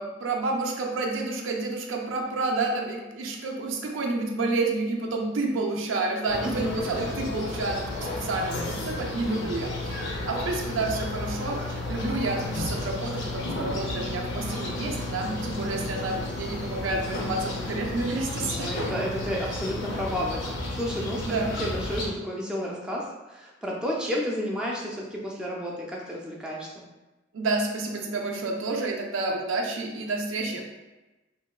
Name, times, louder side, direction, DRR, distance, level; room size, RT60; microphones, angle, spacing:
voice 1, 0.0-18.7 21.3-21.5 27.3-30.6, right 3 dB, 80° right, 1 dB, 0.4 m, -29 dB
sound 1, 6.3-22.1, left 2 dB, 70° left, 0.6 m, -32 dB
voice 2, 6.4-7.0 18.4-26.7, equal, 5° right, -4 dB, 0.4 m, -32 dB
2.7 x 2.2 x 2.3 m, 1.1 s
head